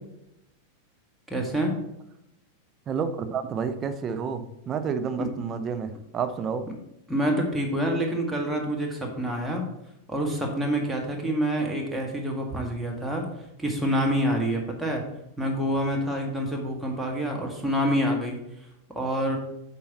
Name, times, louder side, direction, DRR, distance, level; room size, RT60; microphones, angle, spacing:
voice 1, 1.3-1.8 5.2-5.3 7.1-9.6 10.1-13.3 13.6-15.0 15.4-18.4 18.9-19.4, equal, ahead, -1 dB, 1.8 m, -27 dB
voice 2, 2.9-6.7, right 6 dB, 25° right, 9 dB, 0.7 m, -30 dB
8.6 x 5.5 x 4.2 m, 0.85 s
figure-of-eight pair, 90°, 0 cm